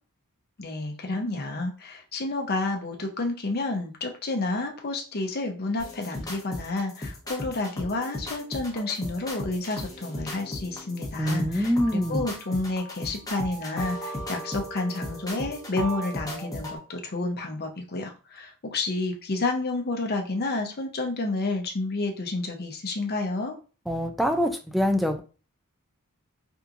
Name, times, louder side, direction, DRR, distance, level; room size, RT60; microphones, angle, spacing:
voice 1, 0.6-23.6, left 2 dB, 45° left, 2 dB, 0.7 m, -30 dB
sound 1, 5.8-16.8, equal, 15° left, 0.9 m, -36 dB
voice 2, 11.2-12.3 23.9-25.2, equal, ahead, 5 dB, 0.4 m, -25 dB
3.5 x 2.9 x 2.5 m, 0.35 s
head